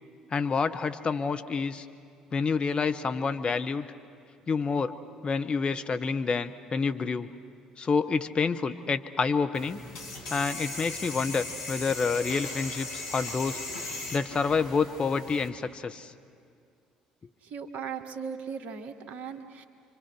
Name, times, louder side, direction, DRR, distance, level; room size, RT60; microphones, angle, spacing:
voice 1, 0.3-1.9 2.3-3.9 4.5-5.0 5.2-7.3 7.8-9.8 10.3-13.6 14.1-16.1, left 5 dB, 35° left, 8 dB, 1.2 m, -28 dB
sound 1, 9.5-15.5, left 2 dB, 70° left, 3.4 m, -38 dB
voice 2, 17.4-19.7, right 6 dB, 50° right, 8 dB, 1.6 m, -38 dB
29.0 x 24.5 x 6.3 m, 2.3 s
figure-of-eight pair, 50°, 3 cm